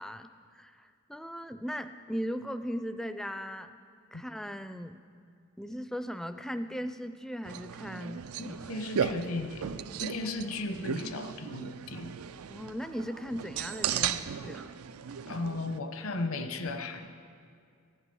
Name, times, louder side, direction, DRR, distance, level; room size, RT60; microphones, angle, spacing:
voice 1, 0.0-3.7 4.1-5.0 5.6-8.2 8.6-8.8 12.5-14.6, equal, ahead, 10 dB, 0.3 m, -38 dB
sound 1, 7.4-15.8, right 8 dB, 90° right, 0.4 m, -36 dB
voice 2, 8.4-9.6 10.0-12.1 15.3-17.1, left 2 dB, 75° left, 7 dB, 0.9 m, -35 dB
15.0 x 11.0 x 5.4 m, 2.2 s
head